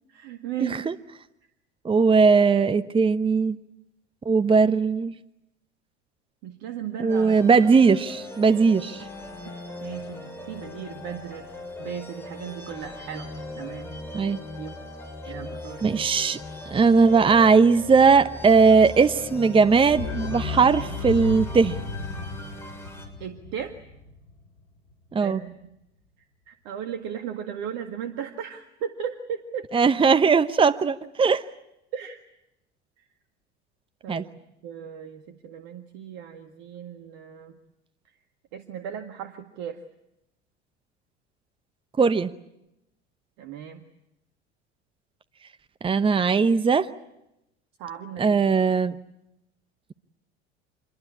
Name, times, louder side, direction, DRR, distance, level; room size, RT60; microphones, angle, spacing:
voice 1, 0.1-0.8 6.4-7.4 9.4-13.3 13.6-13.9 14.6-14.8 15.3-15.8 23.2-23.7 25.2-25.7 26.2-29.7 31.9-32.2 33.0-33.1 34.0-37.6 38.5-39.8 43.4-43.8 47.8-48.4, right 9 dB, 55° right, 7 dB, 1.9 m, -36 dB
voice 2, 0.6-0.9 1.8-3.6 4.2-5.1 7.0-9.0 14.1-14.4 15.8-16.4 16.7-21.8 25.1-25.4 29.7-31.4 34.1-34.2 42.0-42.3 45.8-46.9 48.2-49.0, right 5 dB, 15° right, 12 dB, 0.9 m, -19 dB
sound 1, 7.1-23.1, left 2 dB, 5° left, 7.0 m, -39 dB
sound 2, 19.9-24.6 24.9-25.0, left 4 dB, 65° left, 3.2 m, -34 dB
27.0 x 22.5 x 8.5 m, 0.86 s
figure-of-eight pair, 70°, 34 cm